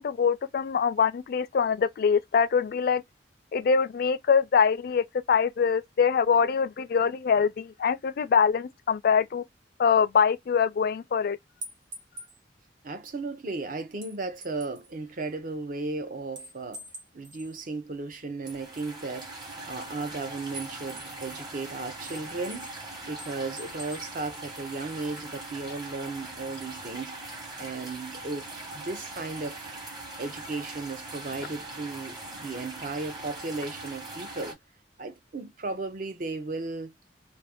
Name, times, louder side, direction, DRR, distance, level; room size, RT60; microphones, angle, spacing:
voice 1, 0.0-3.0 3.5-9.4 9.8-11.4, left 6 dB, 55° left, 0.3 m, -24 dB
sound 1, 11.6-12.4 14.0-14.9 16.4-17.5 18.5-19.4 20.5-21.6 22.0-22.8 23.2-24.1, right 2 dB, 85° right, 1.3 m, -44 dB
voice 2, 12.8-16.8 17.1-19.3 19.7-22.7 23.1-27.2 27.6-29.7 30.2-34.6 35.0-36.9, right 3 dB, 50° right, 0.6 m, -35 dB
sound 2, 18.4-34.5, right 2 dB, 25° right, 1.0 m, -41 dB
2.6 x 2.5 x 3.4 m
head